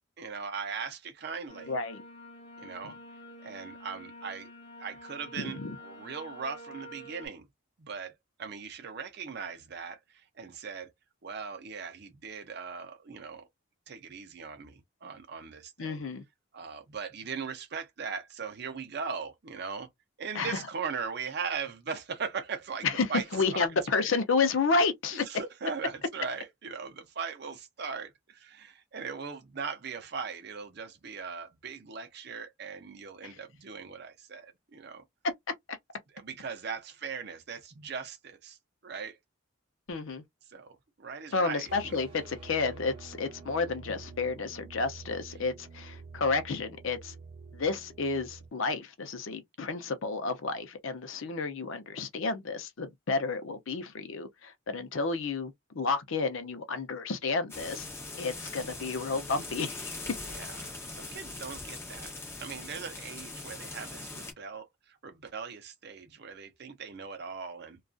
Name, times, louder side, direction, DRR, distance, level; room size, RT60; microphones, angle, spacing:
voice 1, 0.2-1.7 2.6-3.0 3.4-4.5 4.8-7.5 7.8-8.1 8.4-10.9 11.2-13.4 13.9-16.0 16.5-19.9 20.2-23.2 23.5-23.7 23.9-24.0 25.1-35.0 36.1-38.6 38.8-39.2 40.5-41.9 60.3-62.1 62.4-67.8, right 5 dB, 50° right, 0.5 m, -39 dB
sound 1, 1.5-7.3, left 1 dB, 30° left, 1.0 m, -48 dB
voice 2, 1.7-2.0 5.4-5.8 15.8-16.2 20.3-20.6 22.8-25.2 33.2-33.4 39.9-40.2 41.3-47.1 47.5-57.9 58.1-60.0, left 4 dB, 65° left, 0.6 m, -31 dB
sound 2, 41.7-48.5, right 4 dB, 25° right, 0.9 m, -48 dB
sound 3, 57.5-64.3, left 2 dB, 10° left, 0.6 m, -41 dB
2.5 x 2.3 x 2.3 m
head